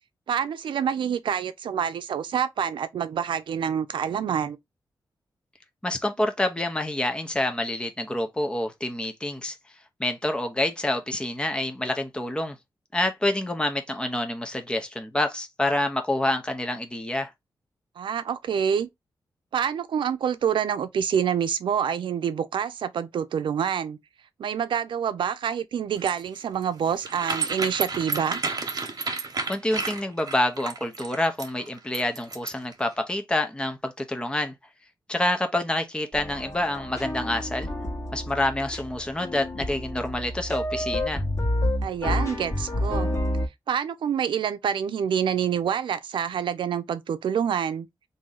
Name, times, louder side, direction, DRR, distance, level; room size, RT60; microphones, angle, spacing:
voice 1, 0.3-4.6 18.0-18.9 19.5-24.0 24.4-28.4 41.8-43.1 43.7-47.9, right 8 dB, 85° right, 0.5 m, -27 dB
voice 2, 5.8-9.6 10.0-12.5 12.9-17.3 29.5-34.5 35.1-37.7 38.1-41.2, left 1 dB, 10° left, 0.7 m, -27 dB
sound 1, 26.0-32.7, right 4 dB, 50° right, 1.1 m, -31 dB
sound 2, 36.1-43.5, left 1 dB, 35° left, 1.3 m, -29 dB
3.0 x 2.7 x 3.8 m
cardioid pair, 75°, 8 cm